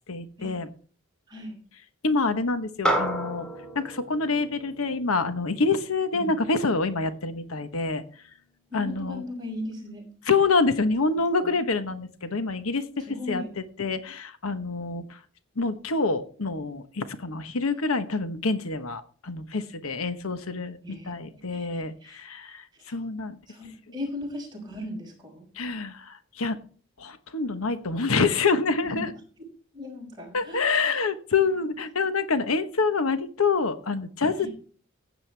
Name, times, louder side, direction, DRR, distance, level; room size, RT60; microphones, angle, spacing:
voice 1, 0.1-0.7 2.0-3.5 3.7-8.0 8.7-9.2 10.3-13.4 13.8-15.0 15.6-22.6 22.9-23.4 25.6-26.6 27.0-29.1 30.3-34.5, left 4 dB, 85° left, 10 dB, 1.1 m, -26 dB
voice 2, 1.3-1.6 6.1-6.4 8.7-10.1 11.4-11.6 13.0-13.5 20.8-21.1 21.5-22.2 22.8-23.0 23.5-25.5 28.8-29.2 29.7-30.9 34.4-34.5, left 1 dB, 20° right, -1 dB, 5.2 m, -38 dB
sound 1, 2.8-7.5, right 1 dB, 5° left, 1.9 m, -32 dB
15.0 x 9.2 x 3.4 m, 0.42 s
head